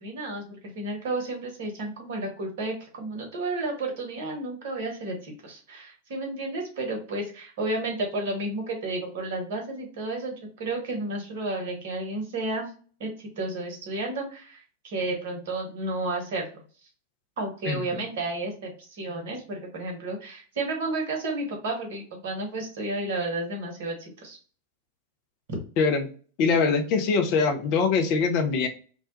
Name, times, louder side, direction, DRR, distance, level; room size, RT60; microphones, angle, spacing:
voice 1, 0.0-12.7 13.0-16.5 17.4-24.4, right 2 dB, 55° right, 1 dB, 0.9 m, -32 dB
voice 2, 25.8-26.1 26.4-28.7, left 5 dB, 40° left, 5 dB, 0.4 m, -23 dB
2.2 x 2.1 x 2.7 m, 0.41 s
figure-of-eight pair, 90°, 0 cm